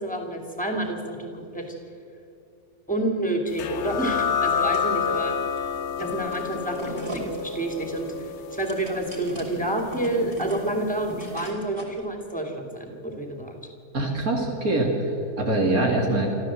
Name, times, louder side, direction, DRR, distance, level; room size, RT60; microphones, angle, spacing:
voice 1, 0.0-1.8 2.9-5.7 6.0-8.1 8.5-13.6, right 1 dB, 5° left, 3 dB, 2.7 m, -29 dB
sound 1, 3.6-10.8, left 7 dB, 60° left, 0.9 m, -29 dB
sound 2, 4.5-5.2 5.5-12.0, right 1 dB, 20° right, 3.2 m, -39 dB
voice 2, 13.9-16.3, right 2 dB, 70° right, 0 dB, 2.9 m, -24 dB
26.5 x 14.0 x 7.7 m, 2.8 s
omnidirectional pair, 1.6 m